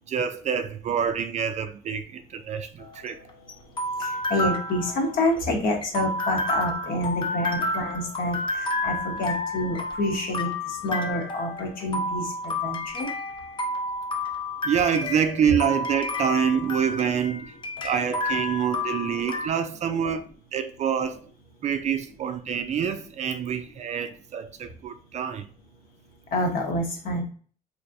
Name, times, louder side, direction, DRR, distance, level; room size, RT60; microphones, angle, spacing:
voice 1, 0.1-3.2 14.6-17.5 17.8-20.2 20.5-21.2 21.6-25.5, right 8 dB, 45° right, 0.4 m, -26 dB
sound 1, 2.8-19.5, left 2 dB, 30° left, 0.6 m, -31 dB
voice 2, 4.0-13.1 26.3-27.2, left 1 dB, 55° left, 1.2 m, -28 dB
3.2 x 3.1 x 2.6 m
cardioid pair, 110°, 17 cm